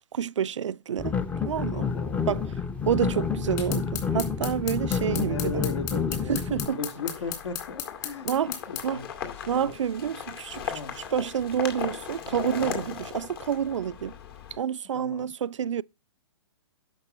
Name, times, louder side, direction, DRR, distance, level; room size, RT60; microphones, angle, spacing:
voice 1, 0.1-1.1 1.4-1.9 2.3-2.4 2.9-5.6 6.3-6.8 8.2-8.5 8.8-9.0 9.5-14.1 14.6-15.8, right 8 dB, 85° right, 0.4 m, -28 dB
sound 1, 1.0-6.7, left 6 dB, 10° left, 0.6 m, -29 dB
voice 2, 1.7-2.5 5.1-9.7 10.7-11.0 12.6-12.9 14.9-15.3, left 4 dB, 70° left, 2.1 m, -37 dB
sound 2, 3.6-8.9, left 10 dB, 35° left, 2.9 m, -35 dB
sound 3, 6.6-14.6, left 8 dB, 55° left, 2.4 m, -38 dB
11.5 x 5.9 x 4.2 m
hypercardioid pair, 140°, 15 cm